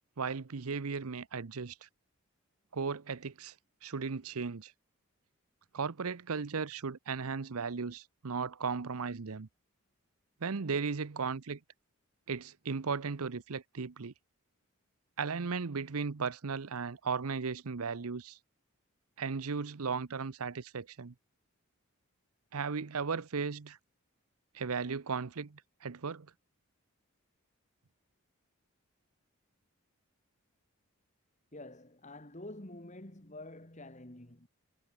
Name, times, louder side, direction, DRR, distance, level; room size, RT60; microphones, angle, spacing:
voice 1, 0.2-1.9 2.7-3.5 3.8-4.7 5.7-9.5 10.4-11.6 12.3-14.1 15.2-18.4 19.2-21.1 22.5-23.8 24.5-26.3, right 5 dB, 80° right, 0.7 m, -36 dB
voice 2, 31.5-34.5, left 1 dB, 30° left, 2.2 m, -48 dB
head